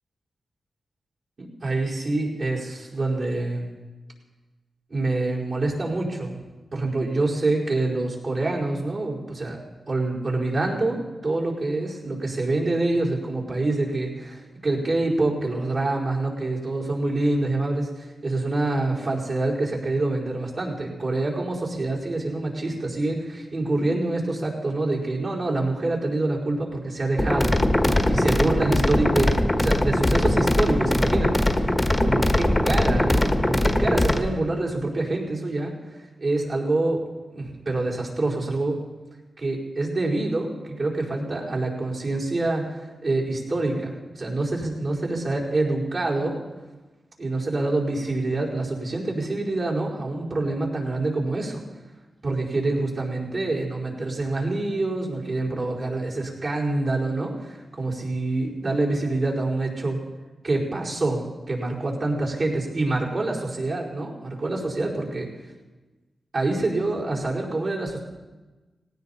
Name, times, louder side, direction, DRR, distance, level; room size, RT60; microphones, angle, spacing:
voice 1, 1.4-3.7 4.9-6.4 6.7-9.6 9.9-27.6 27.8-31.7 32.0-35.7 36.2-37.0 37.3-38.8 39.4-46.4 47.2-51.6 52.2-60.0 60.4-65.3 66.3-68.0, right 2 dB, 50° right, -5 dB, 4.9 m, -26 dB
sound 1, 27.2-34.2, left 1 dB, 15° left, 1.4 m, -21 dB
18.5 x 18.0 x 4.3 m, 1.2 s
wide cardioid pair, 110°, 0 cm